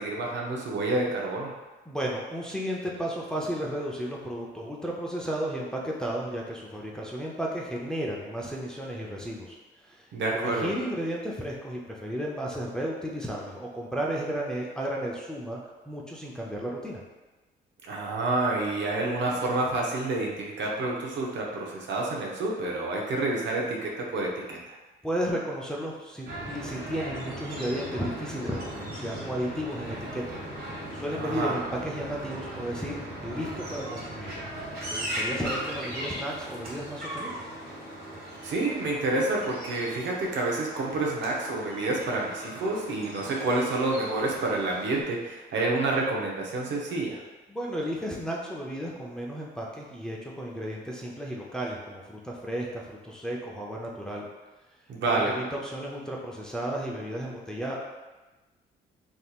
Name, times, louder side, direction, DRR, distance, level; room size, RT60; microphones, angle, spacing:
voice 1, 0.0-1.5 10.1-10.7 17.8-24.7 31.2-31.6 38.4-47.2 54.9-55.4, right 2 dB, 65° right, -2 dB, 0.7 m, -28 dB
voice 2, 1.9-10.1 10.3-15.6 15.9-17.0 25.0-30.4 30.7-34.3 34.9-37.4 47.5-54.3 55.1-57.8, equal, 5° left, -3 dB, 0.5 m, -33 dB
sound 1, 26.3-45.0, right 1 dB, 50° right, 1.3 m, -38 dB
3.5 x 2.9 x 2.3 m, 1.2 s
cardioid pair, 90°, 20 cm